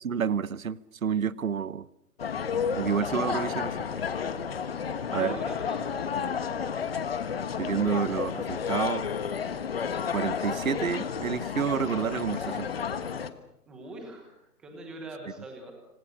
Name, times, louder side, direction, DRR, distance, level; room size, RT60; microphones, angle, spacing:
voice 1, 0.0-1.9 2.8-3.8 5.1-5.4 7.6-9.1 10.1-12.7, right 7 dB, 60° right, 1.1 m, -29 dB
sound 1, 2.2-13.3, left 6 dB, 40° left, 1.5 m, -31 dB
voice 2, 5.1-5.9 13.7-15.7, right 1 dB, ahead, 1.0 m, -42 dB
26.5 x 26.0 x 6.5 m
hypercardioid pair, 170°, 47 cm